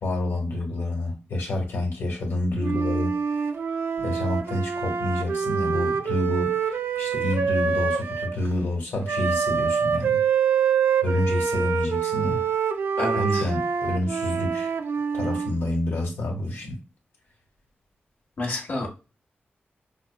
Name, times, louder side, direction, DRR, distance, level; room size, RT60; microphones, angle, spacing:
voice 1, 0.0-3.1 4.0-10.2 11.0-12.4 13.2-14.7 15.1-16.8, left 1 dB, 80° left, 1.6 m, -28 dB
Wind instrument woodwind instrument, 2.6-8.4 9.1-15.5, right 6 dB, 80° right, 0.5 m, -25 dB
voice 2, 13.0-13.5 18.4-18.9, left 2 dB, 55° left, 1.2 m, -29 dB
5.8 x 2.0 x 2.2 m
wide cardioid pair, 95°, 4 cm